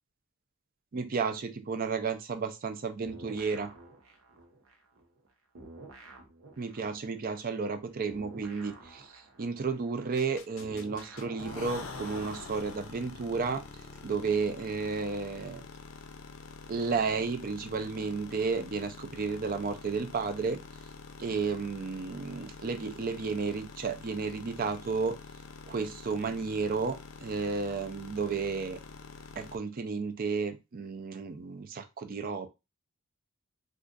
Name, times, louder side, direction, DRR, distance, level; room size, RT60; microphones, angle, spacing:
voice 1, 0.9-3.7 6.6-13.6 14.0-15.6 16.7-20.6 21.2-25.1 25.7-28.8 29.4-32.5, right 4 dB, 40° right, 8 dB, 0.4 m, -32 dB
sound 1, 3.0-5.3 5.5-13.1, right 2 dB, 75° right, 0.8 m, -50 dB
sound 2, 10.2-29.6, left 4 dB, 65° left, 0.5 m, -47 dB
2.5 x 2.4 x 3.7 m, 0.25 s
head